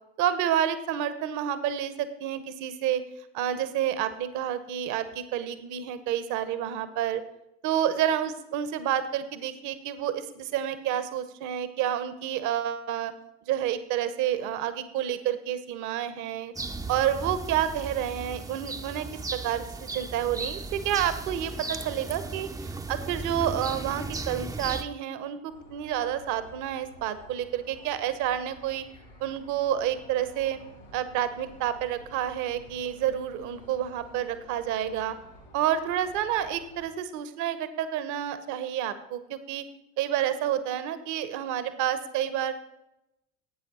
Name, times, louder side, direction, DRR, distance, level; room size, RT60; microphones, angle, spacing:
voice 1, 0.2-3.0 3.3-7.2 7.6-13.1 13.4-16.5 16.9-28.8 29.2-30.6 30.9-35.1 35.5-39.6 40.0-42.5, right 10 dB, 55° right, 12 dB, 1.1 m, -29 dB
sound 1, 16.5-24.8, right 3 dB, 10° right, 0.6 m, -36 dB
sound 2, 25.5-36.8, left 1 dB, 85° left, 3.5 m, -52 dB
12.5 x 8.8 x 4.3 m, 0.87 s
figure-of-eight pair, 60°, 36 cm